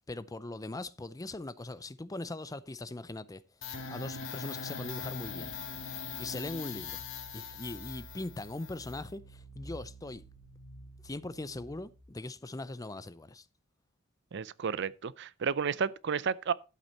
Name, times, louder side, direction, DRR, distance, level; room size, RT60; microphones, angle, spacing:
voice 1, 0.0-3.4 3.9-5.5 6.2-7.0 7.3-10.2 11.0-13.5, left 2 dB, 20° left, 0.5 m, -40 dB
sound 1, 3.6-12.0, left 4 dB, 70° left, 2.0 m, -43 dB
voice 2, 14.3-16.5, right 6 dB, 60° right, 0.5 m, -32 dB
12.5 x 8.2 x 4.1 m
head